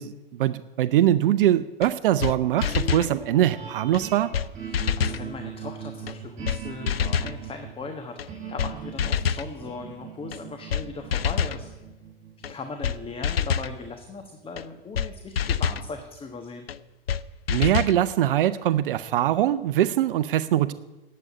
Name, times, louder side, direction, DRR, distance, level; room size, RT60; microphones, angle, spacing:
voice 1, 0.0-4.3 17.5-20.7, right 12 dB, 65° right, 14 dB, 0.6 m, -22 dB
sound 1, 1.8-1.9 2.2-2.3 2.6-3.1 3.9-4.0 4.3-4.5 4.7-5.2 6.1-6.2 6.5-6.6 6.9-7.4 8.2-8.3 8.6-8.7 9.0-9.5 10.3-10.4 10.7-10.8 11.1-11.6 12.4-12.5 12.8-13.0 13.2-13.7 14.6-14.7 15.0-15.1 15.4-15.8 16.7-16.8 17.1-17.2 17.5-18.0, left 7 dB, 90° left, 0.5 m, -26 dB
sound 2, 2.6-14.9, right 7 dB, 25° right, 5.7 m, -40 dB
voice 2, 4.6-8.2 8.5-11.7 12.5-16.7, left 4 dB, 20° left, 5 dB, 1.2 m, -38 dB
11.0 x 7.8 x 9.4 m, 1.1 s
hypercardioid pair, 95°, 29 cm